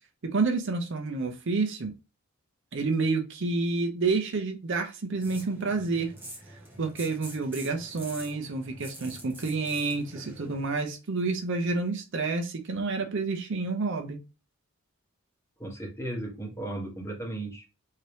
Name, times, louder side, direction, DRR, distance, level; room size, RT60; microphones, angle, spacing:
voice 1, 0.3-1.9 2.7-6.1 6.8-14.2, right 3 dB, 55° right, 5 dB, 0.6 m, -29 dB
sound 1, 5.2-10.7, right 1 dB, 10° right, 0.8 m, -46 dB
voice 2, 15.6-17.6, right 1 dB, 10° left, -1 dB, 1.0 m, -35 dB
3.2 x 2.8 x 3.0 m, 0.29 s
head